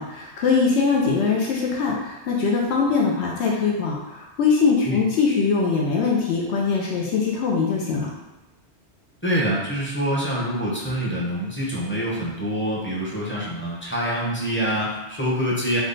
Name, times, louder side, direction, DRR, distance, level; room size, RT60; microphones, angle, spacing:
voice 1, 0.0-8.1, left 5 dB, 75° left, -2 dB, 0.9 m, -22 dB
voice 2, 9.2-15.8, equal, 15° left, -6 dB, 0.6 m, -25 dB
3.5 x 2.2 x 3.8 m, 1.0 s
omnidirectional pair, 1.1 m